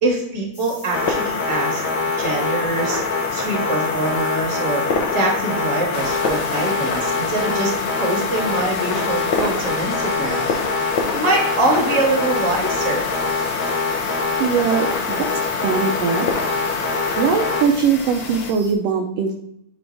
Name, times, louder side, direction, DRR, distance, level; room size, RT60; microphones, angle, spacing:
voice 1, 0.0-1.8 2.2-3.0 3.3-4.9 5.1-10.5 11.1-13.1, right 2 dB, 20° right, -1 dB, 0.9 m, -24 dB
sound 1, 0.5-18.7, left 2 dB, 35° left, 1.2 m, -41 dB
sound 2, 0.9-17.6, left 4 dB, 65° left, 1.2 m, -23 dB
sound 3, 5.9-18.5, left 5 dB, 90° left, 2.8 m, -33 dB
voice 2, 14.4-15.3 15.6-16.3 17.2-19.3, right 6 dB, 80° right, 3 dB, 1.4 m, -20 dB
10.0 x 3.5 x 3.3 m, 0.82 s
omnidirectional pair, 3.5 m